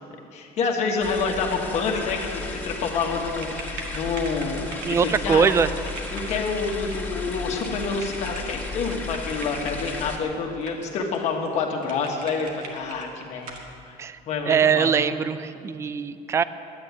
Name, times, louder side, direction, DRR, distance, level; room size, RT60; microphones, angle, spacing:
voice 1, 0.3-5.5 6.1-13.5 13.9-14.0 14.3-14.9, left 4 dB, 45° left, 2 dB, 1.6 m, -28 dB
sound 1, 1.0-10.2, left 3 dB, 15° left, 1.7 m, -34 dB
sound 2, 3.3-10.0 10.6-11.2 11.4-11.5 11.8-13.0 13.4-13.7, right 3 dB, 60° right, 1.9 m, -41 dB
voice 2, 4.8-5.7 14.0-14.2 14.4-16.4, right 6 dB, 15° right, 14 dB, 0.3 m, -22 dB
11.0 x 9.6 x 9.6 m, 2.6 s
cardioid pair, 175°, 16 cm